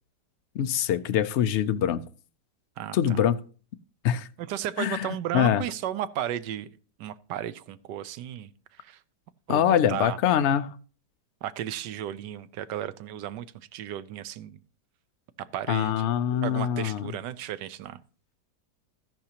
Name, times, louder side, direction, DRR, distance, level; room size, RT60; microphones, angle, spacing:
voice 1, 0.5-2.0 2.9-3.4 4.0-4.3 4.8-5.1 5.3-5.6 9.5-10.8 15.7-17.1, left 10 dB, 75° left, 11 dB, 0.6 m, -24 dB
voice 2, 2.8-3.3 4.4-6.7 7.0-9.0 9.5-10.2 11.4-14.6 15.4-16.1 16.4-18.0, right 11 dB, 85° right, 14 dB, 1.3 m, -34 dB
13.5 x 10.5 x 2.9 m, 0.40 s
omnidirectional pair, 1.8 m